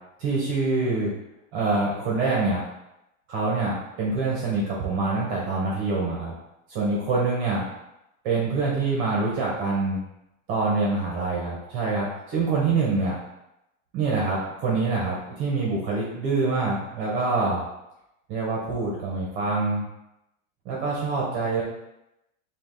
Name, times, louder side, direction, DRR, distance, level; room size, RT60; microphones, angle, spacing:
voice 1, 0.2-1.1 1.5-2.6 3.3-6.3 6.7-7.6 8.2-10.0 10.5-13.2 13.9-17.6 18.3-19.8 20.6-21.6, right 3 dB, 35° right, -4 dB, 1.0 m, -25 dB
5.1 x 2.5 x 3.8 m, 0.87 s
supercardioid pair, 165°, 39 cm